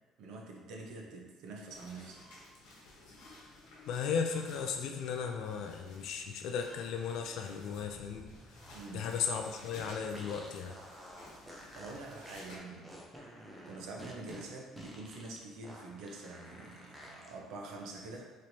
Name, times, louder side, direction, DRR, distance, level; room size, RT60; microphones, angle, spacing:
voice 1, 0.2-2.2 8.6-9.1 11.7-13.0 13.6-18.2, right 3 dB, 65° right, 0 dB, 0.7 m, -46 dB
sound 1, 1.7-12.6, left 2 dB, 85° left, 1.0 m, -55 dB
voice 2, 3.9-8.3 8.9-10.7, left 6 dB, 60° left, 4 dB, 0.3 m, -36 dB
sound 2, 7.7-17.3, equal, 5° right, 0.5 m, -51 dB
4.4 x 3.1 x 2.7 m, 1.3 s
cardioid pair, 175°, 0 cm